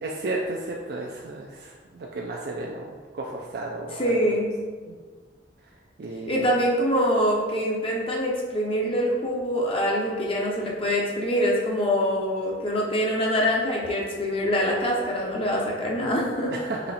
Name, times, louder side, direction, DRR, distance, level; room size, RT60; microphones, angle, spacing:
voice 1, 0.0-4.4 4.8-5.0 6.0-6.5 16.5-16.9, right 2 dB, 60° right, -1 dB, 0.4 m, -33 dB
voice 2, 4.0-4.5 6.3-16.5, equal, 30° left, -3 dB, 0.7 m, -24 dB
4.2 x 3.1 x 4.0 m, 1.5 s
head